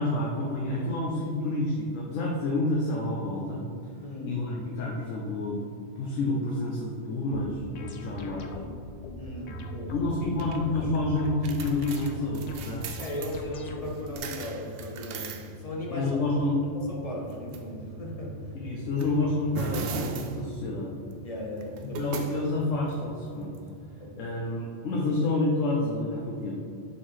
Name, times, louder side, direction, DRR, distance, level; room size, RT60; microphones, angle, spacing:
voice 1, 0.0-3.6 4.3-5.6 6.0-8.5 9.9-12.8 15.9-16.6 18.5-20.9 22.0-23.5 24.2-26.6, left 2 dB, 85° left, -2 dB, 1.1 m, -29 dB
voice 2, 4.0-4.3 9.2-9.9 13.0-16.2 16.7-18.4 21.2-22.2 24.0-24.4, left 1 dB, 30° left, -3 dB, 0.9 m, -37 dB
sound 1, 7.3-14.2, left 2 dB, 60° left, 0.4 m, -41 dB
sound 2, 9.5-24.2, right 3 dB, 60° right, 0.7 m, -40 dB
7.1 x 4.5 x 3.3 m, 2.4 s
omnidirectional pair, 1.3 m